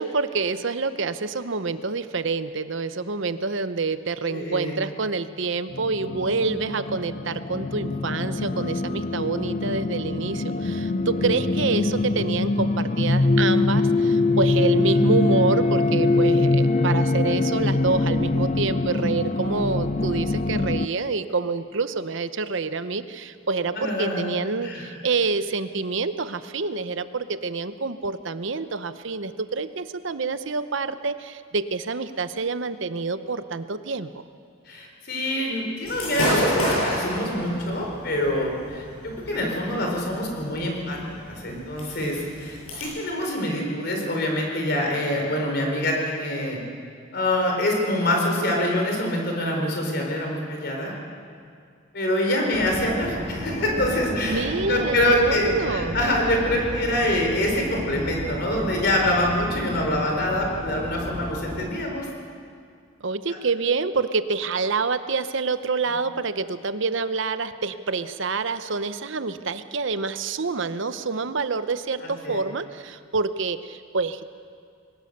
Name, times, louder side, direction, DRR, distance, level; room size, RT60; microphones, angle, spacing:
voice 1, 0.0-34.2 54.2-56.0 63.0-74.3, right 4 dB, 65° right, 12 dB, 0.8 m, -27 dB
voice 2, 4.3-4.8 23.7-24.2 24.6-24.9 34.7-41.0 41.3-46.6 47.1-50.9 51.9-62.1 72.0-72.4, left 1 dB, 50° left, 1 dB, 4.2 m, -25 dB
sound 1, 5.7-20.9, left 2 dB, 35° left, 0.4 m, -23 dB
Gunshot gunfire / Fireworks, 35.9-42.8, equal, 90° left, 7.9 m, -30 dB
sound 2, 52.5-61.7, equal, 35° right, 4.4 m, -33 dB
22.0 x 19.0 x 6.7 m, 2.2 s
head